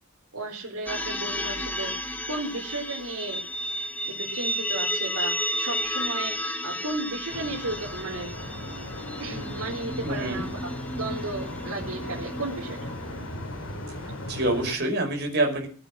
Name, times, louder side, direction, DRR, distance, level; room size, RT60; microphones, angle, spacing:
voice 1, 0.3-1.9 2.3-3.4 4.1-8.3 9.2-10.7 11.0-12.9, right 2 dB, 85° right, -4 dB, 4.4 m, -34 dB
sound 1, 0.9-13.4, left 1 dB, 5° left, 1.4 m, -33 dB
sound 2, 7.3-14.7, left 1 dB, 75° left, 4.1 m, -37 dB
voice 2, 10.0-10.5 14.3-15.7, right 2 dB, 50° right, 2 dB, 5.3 m, -26 dB
19.5 x 8.8 x 6.1 m, 0.42 s
head